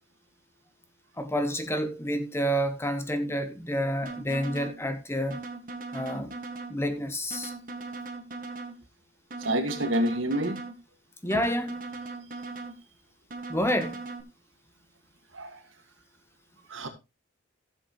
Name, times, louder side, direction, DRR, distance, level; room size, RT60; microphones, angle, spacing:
voice 1, 1.2-5.4 5.9-6.3 6.7-7.5 11.2-11.8 13.5-14.0, equal, 15° left, 1.0 m, -29 dB
sound 1, 4.0-4.8 5.3-6.8 7.3-8.8 9.3-10.8 11.3-12.8 13.3-14.2, right 3 dB, 45° right, 1.8 m, -39 dB
voice 2, 9.4-10.6 15.3-15.6 16.7-16.9, right 1 dB, 75° right, 2.0 m, -28 dB
14.5 x 7.8 x 3.1 m
head